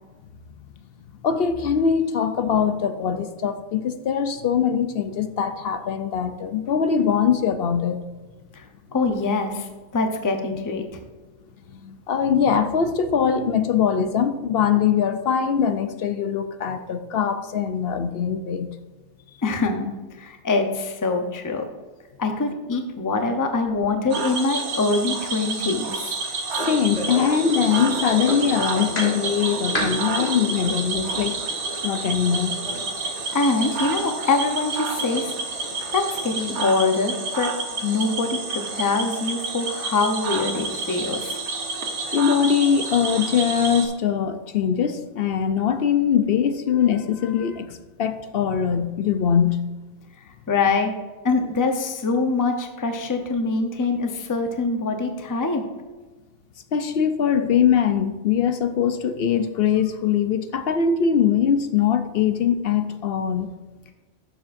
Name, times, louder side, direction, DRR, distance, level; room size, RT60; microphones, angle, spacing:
voice 1, 1.2-8.0 11.8-18.7 26.6-31.4 31.8-32.5 42.1-49.6 56.7-63.5, left 7 dB, 60° left, 0.7 m, -22 dB
voice 2, 8.9-11.0 19.4-21.6 22.2-26.1 33.0-35.3 35.9-37.5 37.8-41.4 50.5-50.9 51.2-55.6, left 3 dB, 20° left, 0.6 m, -24 dB
Cricket / Frog, 24.1-43.9, right 4 dB, 70° right, 1.3 m, -29 dB
sound 1, 26.6-36.6, equal, 80° left, 2.8 m, -34 dB
12.0 x 7.1 x 2.6 m
omnidirectional pair, 1.2 m